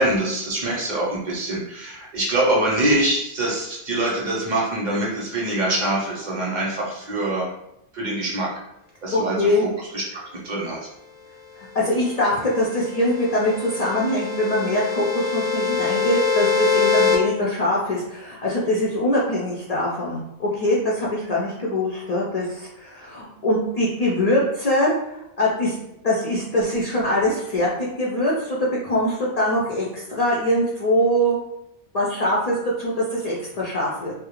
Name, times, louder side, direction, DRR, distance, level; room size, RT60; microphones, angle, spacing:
voice 1, 0.0-7.5 7.9-8.5 9.0-10.9, right 1 dB, 55° right, -4 dB, 0.7 m, -24 dB
voice 2, 9.1-9.7 11.6-25.7 26.0-31.4 31.9-34.1, left 1 dB, 55° left, -5 dB, 0.5 m, -23 dB
sound 1, 12.2-17.2, left 5 dB, 15° right, 0.5 m, -24 dB
2.3 x 2.1 x 2.9 m, 0.81 s
omnidirectional pair, 1.0 m